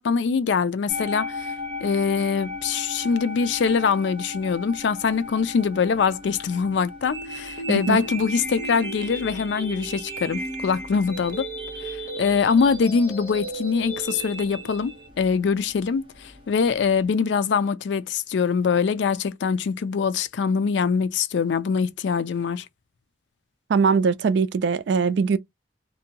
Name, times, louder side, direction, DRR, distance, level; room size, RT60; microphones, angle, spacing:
voice 1, 0.0-1.5 1.8-11.5 11.8-22.6, left 5 dB, 80° left, 0.4 m, -23 dB
sound 1, 0.9-17.1, left 3 dB, 30° right, 0.8 m, -39 dB
sound 2, 7.1-15.1, right 2 dB, 15° left, 0.7 m, -35 dB
voice 2, 23.7-25.4, right 5 dB, 75° right, 0.3 m, -21 dB
2.7 x 2.2 x 2.8 m
head